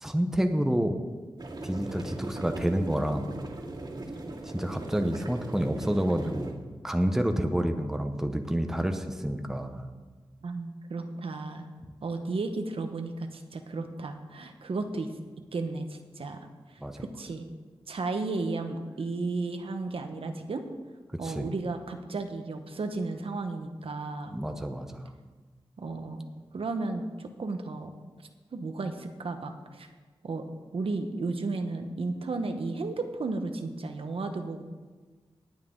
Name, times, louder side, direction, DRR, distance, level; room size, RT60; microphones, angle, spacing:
voice 1, 0.0-1.0 1.6-3.3 4.4-6.5 6.8-9.8 16.8-17.0 21.2-21.5 24.3-25.0, equal, 5° right, 6 dB, 0.8 m, -28 dB
sound 1, 1.4-6.5, right 2 dB, 50° right, 2.2 m, -39 dB
voice 2, 10.4-11.7 12.0-15.1 15.5-17.4 17.9-20.6 21.2-24.4 25.8-26.3 26.5-27.9 28.5-29.9 30.2-30.5 30.7-34.6, right 3 dB, 70° right, 6 dB, 1.1 m, -34 dB
18.5 x 8.5 x 3.8 m, 1.4 s
wide cardioid pair, 115°, 10 cm